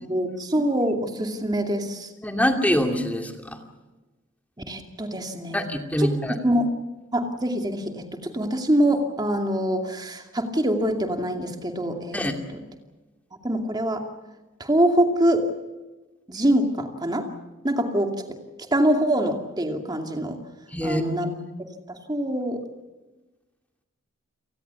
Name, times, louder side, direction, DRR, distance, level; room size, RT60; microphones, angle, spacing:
voice 1, 0.1-2.1 4.7-5.6 6.0-6.2 6.4-6.7 7.1-12.2 13.4-14.1 14.6-15.5 16.3-17.3 17.6-18.1 18.7-20.4 20.8-21.3 21.9-22.6, right 1 dB, 20° right, 4 dB, 2.5 m, -24 dB
voice 2, 2.2-3.6 5.5-6.4 12.1-12.4 20.7-21.0, equal, 10° left, 4 dB, 2.5 m, -24 dB
29.5 x 19.0 x 7.0 m, 1.2 s
head